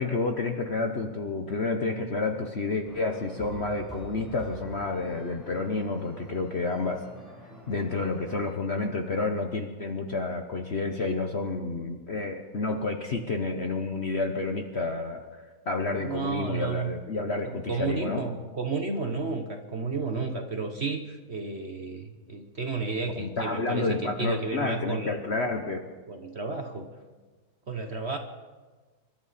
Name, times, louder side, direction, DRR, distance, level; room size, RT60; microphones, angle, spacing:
voice 1, 0.0-7.0 7.7-18.2 23.2-25.8, left 3 dB, 45° left, 5 dB, 1.0 m, -30 dB
sound 1, 2.8-8.5, right 1 dB, ahead, 6.1 m, -46 dB
voice 2, 16.0-17.0 17.4-25.2 26.1-26.9 27.7-28.2, right 4 dB, 40° right, 5 dB, 1.1 m, -32 dB
26.5 x 12.5 x 4.2 m, 1.3 s
omnidirectional pair, 2.0 m